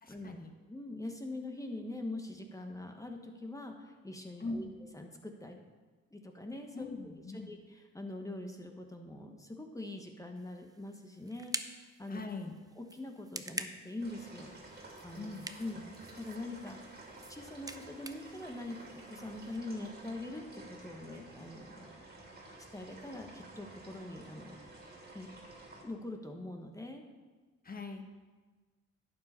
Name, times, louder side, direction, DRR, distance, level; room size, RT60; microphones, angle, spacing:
voice 1, 0.0-0.5 4.4-4.7 6.7-7.5 12.1-12.6 15.1-15.9 27.6-28.0, left 3 dB, 30° left, 4 dB, 1.4 m, -42 dB
voice 2, 0.7-4.7 4.9-5.6 6.1-6.9 7.3-7.6 7.9-12.2 12.8-15.3 15.6-15.8 16.2-17.0 17.3-22.0 22.7-24.7 25.1-25.3 25.8-27.0, left 2 dB, 10° left, 3 dB, 1.3 m, -43 dB
sound 1, 10.4-19.6, right 3 dB, 10° right, 0.6 m, -47 dB
sound 2, 14.0-25.8, right 2 dB, 30° right, 2.7 m, -52 dB
11.5 x 8.5 x 4.3 m, 1.3 s
cardioid pair, 90°, 30 cm